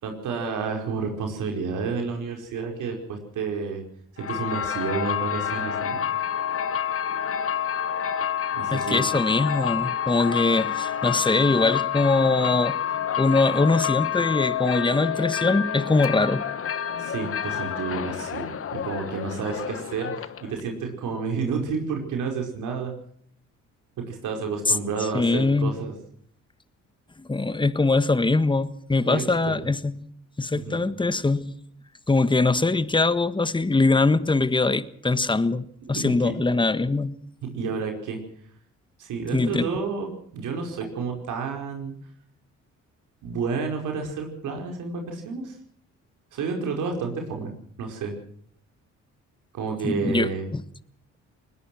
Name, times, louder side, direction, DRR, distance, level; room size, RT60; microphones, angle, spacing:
voice 1, 0.0-3.8 4.1-6.0 8.5-9.1 16.9-22.9 24.0-25.9 29.0-29.7 30.5-30.8 35.9-36.4 37.5-38.2 39.0-40.1 40.3-41.9 43.2-45.6 46.3-48.1 49.5-50.5, right 5 dB, 80° right, 5.1 m, -30 dB
sound 1, 4.2-20.6, left 9 dB, 45° left, 1.3 m, -28 dB
voice 2, 8.7-12.8 13.2-16.4 25.1-25.8 27.2-29.9 30.4-31.5 32.1-37.2 39.3-39.7 49.8-50.6, left 3 dB, 15° left, 1.4 m, -22 dB
21.0 x 20.5 x 6.2 m
cardioid pair, 90°, 30 cm